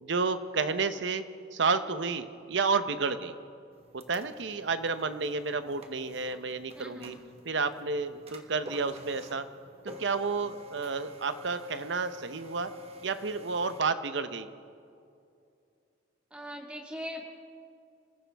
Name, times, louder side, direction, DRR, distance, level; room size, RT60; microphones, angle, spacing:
voice 1, 0.0-1.2 1.5-3.3 3.9-7.2 7.4-9.4 10.0-12.7 13.0-14.5, right 4 dB, 75° right, 11 dB, 0.8 m, -31 dB
sound 1, 3.7-13.8, left 1 dB, 35° right, 1.3 m, -49 dB
voice 2, 6.8-7.2 16.3-17.3, equal, 5° right, 1 dB, 1.7 m, -40 dB
27.5 x 14.5 x 3.5 m, 2.5 s
head